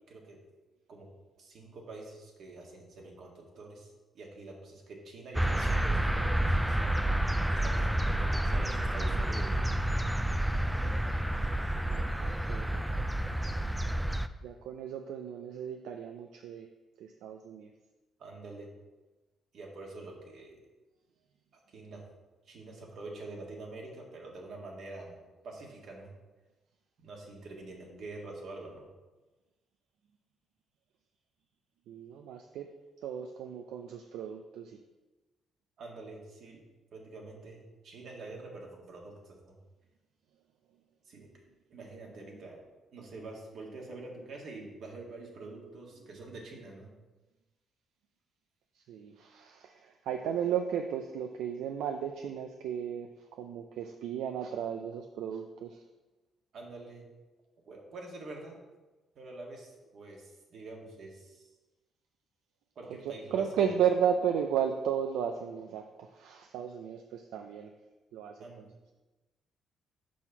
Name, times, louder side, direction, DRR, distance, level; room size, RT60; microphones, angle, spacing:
voice 1, 0.1-0.4 0.9-1.1 1.4-7.1 7.5-9.7 18.2-18.7 19.5-20.6 21.5-22.0 22.5-25.2 25.4-26.1 27.0-28.9 35.8-36.6 36.9-39.5 41.1-41.3 41.7-42.6 42.9-46.9 56.5-57.1 57.7-58.5 59.2-61.5 62.8-63.5 68.4-68.7, right 2 dB, 65° right, 0 dB, 1.7 m, -46 dB
sound 1, 5.3-14.3, right 1 dB, 5° right, 0.3 m, -29 dB
voice 2, 11.9-12.8 14.4-16.7 17.0-17.7 31.9-32.7 33.0-34.8 48.8-53.1 53.4-55.8 63.0-67.7 68.1-68.6, right 8 dB, 85° right, 5 dB, 0.4 m, -34 dB
6.2 x 5.8 x 4.5 m, 1.2 s
cardioid pair, 90°, 0 cm